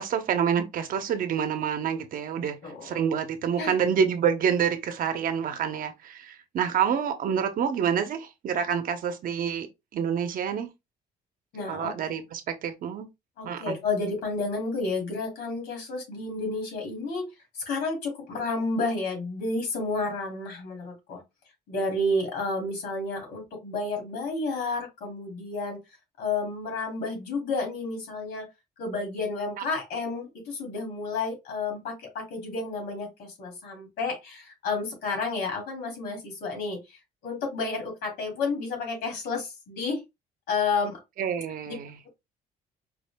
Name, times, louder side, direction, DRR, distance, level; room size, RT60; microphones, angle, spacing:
voice 1, 0.0-2.6 2.8-9.7 9.9-10.7 11.7-13.1 13.4-13.8 41.2-42.0, right 7 dB, 55° right, 0.8 m, -27 dB
voice 2, 11.5-11.9 13.4-17.2 17.5-21.2 21.7-25.8 26.2-28.5 28.8-40.0 40.5-41.0 41.7-41.8, left 3 dB, 80° left, 2.7 m, -31 dB
4.8 x 2.1 x 3.5 m
cardioid pair, 110°, 17 cm